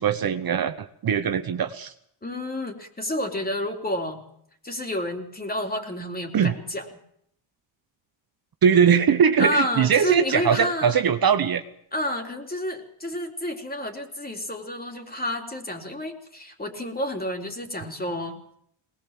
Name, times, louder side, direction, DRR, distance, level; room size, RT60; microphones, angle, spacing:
voice 1, 0.0-1.9 6.3-6.5 8.6-11.6, right 7 dB, 45° right, 9 dB, 1.2 m, -21 dB
voice 2, 2.2-4.2 4.6-6.8 9.4-11.0 11.9-18.5, left 1 dB, 20° left, 4 dB, 3.8 m, -30 dB
20.5 x 20.0 x 7.6 m, 0.69 s
cardioid pair, 95°, 48 cm